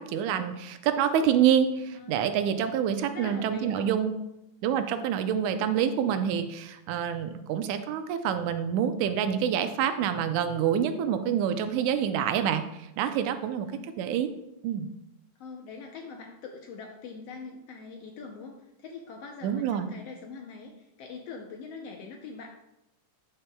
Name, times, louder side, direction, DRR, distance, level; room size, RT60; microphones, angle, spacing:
voice 1, 0.0-4.1 4.6-13.7 14.0-14.3 14.6-14.9 19.4-19.9, right 8 dB, 85° right, 9 dB, 2.0 m, -27 dB
voice 2, 1.9-2.3 3.1-3.9 13.5-13.9 15.4-22.5, left 5 dB, 75° left, 2 dB, 1.5 m, -43 dB
12.0 x 5.6 x 2.2 m, 0.89 s
omnidirectional pair, 3.4 m